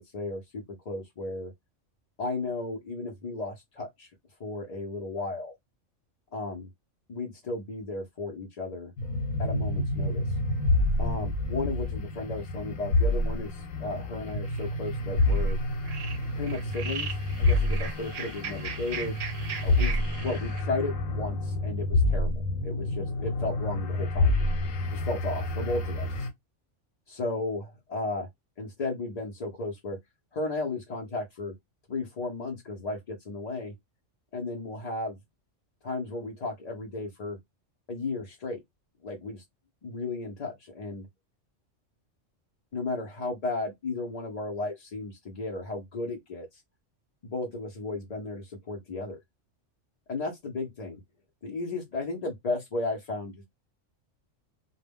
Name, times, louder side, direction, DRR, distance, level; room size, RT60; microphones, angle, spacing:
voice 1, 0.0-1.5 2.2-4.1 4.4-5.5 6.3-6.7 7.1-8.9 9.4-10.4 11.0-15.6 16.4-19.2 19.6-20.0 20.2-24.3 24.9-26.3 27.1-28.3 28.6-30.0 30.3-31.5 31.9-33.7 34.3-35.2 35.8-37.4 37.9-38.6 39.0-39.4 39.8-41.1 42.7-46.6 47.2-49.2 50.1-51.0 51.4-53.4, left 2 dB, 50° left, 0.4 m, -34 dB
sound 1, 9.0-26.3, left 2 dB, 80° left, 1.0 m, -28 dB
sound 2, 14.3-14.7 15.2-15.5 15.8-20.6, right 6 dB, 55° right, 0.6 m, -39 dB
2.1 x 2.1 x 3.4 m
omnidirectional pair, 1.3 m